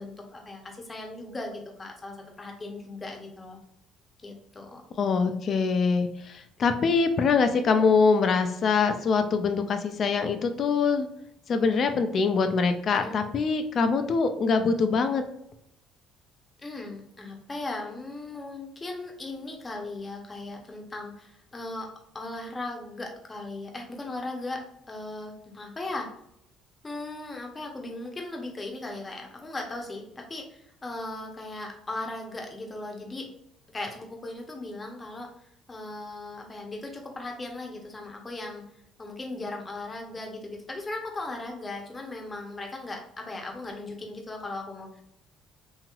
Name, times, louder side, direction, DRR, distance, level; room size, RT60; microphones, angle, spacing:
voice 1, 0.0-3.6 4.2-4.8 12.9-13.2 16.6-26.1 26.8-33.3 33.7-38.6 39.0-45.0, left 2 dB, 25° left, 2 dB, 0.8 m, -38 dB
voice 2, 5.0-11.1 11.5-15.2, left 5 dB, 50° left, 8 dB, 0.4 m, -24 dB
3.0 x 2.8 x 2.4 m, 0.75 s
supercardioid pair, 85°, 0 cm